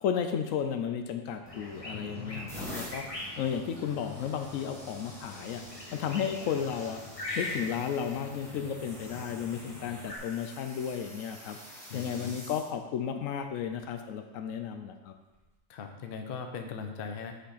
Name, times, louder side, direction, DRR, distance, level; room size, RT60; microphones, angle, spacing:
voice 1, 0.0-3.0 3.4-5.6 5.9-7.0 7.4-11.6 11.9-15.1, left 8 dB, 75° left, 6 dB, 0.9 m, -33 dB
sound 1, 1.4-10.2, left 1 dB, 25° left, 1.1 m, -42 dB
sound 2, 1.5-1.8 2.3-12.6 13.5-13.8 15.3-15.5, equal, ahead, 1.4 m, -48 dB
voice 2, 1.9-2.6 11.9-12.5 15.7-17.3, left 5 dB, 50° left, 5 dB, 0.8 m, -40 dB
6.3 x 5.6 x 4.0 m, 1.1 s
omnidirectional pair, 1.4 m